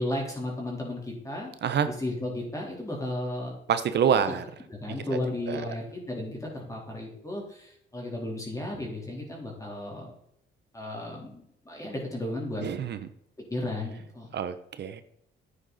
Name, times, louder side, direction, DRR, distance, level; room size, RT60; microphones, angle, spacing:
voice 1, 0.0-1.5 1.9-3.5 4.1-4.3 4.7-10.1 10.7-12.6 13.5-14.3, left 1 dB, 15° left, -2 dB, 3.8 m, -34 dB
voice 2, 3.7-4.4 5.5-5.7 12.6-13.0 14.3-15.0, right 8 dB, 60° right, 11 dB, 0.9 m, -26 dB
10.0 x 9.2 x 4.1 m, 0.72 s
cardioid pair, 90°, 20 cm